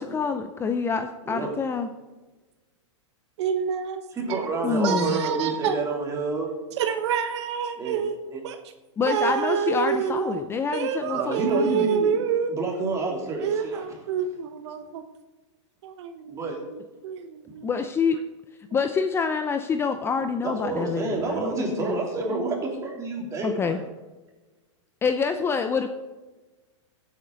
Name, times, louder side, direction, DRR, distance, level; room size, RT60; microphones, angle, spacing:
voice 1, 0.0-1.9 4.6-5.2 9.0-11.9 17.6-18.2 18.7-21.5 21.8-21.9 23.4-23.8 25.0-25.9, left 5 dB, 15° left, 8 dB, 0.6 m, -26 dB
voice 2, 3.4-4.0 4.3-4.5 4.8-5.8 6.8-8.6 9.1-10.4 10.7-12.6 13.4-15.0 15.8-17.7 21.8-22.6, right 7 dB, 60° right, 8 dB, 1.1 m, -28 dB
voice 3, 4.1-6.5 7.8-8.0 8.3-8.4 11.1-12.1 12.5-13.8 16.3-16.6 20.4-23.8, right 3 dB, 20° right, 0 dB, 3.3 m, -29 dB
15.5 x 8.6 x 4.0 m, 1.2 s
hypercardioid pair, 140°, 16 cm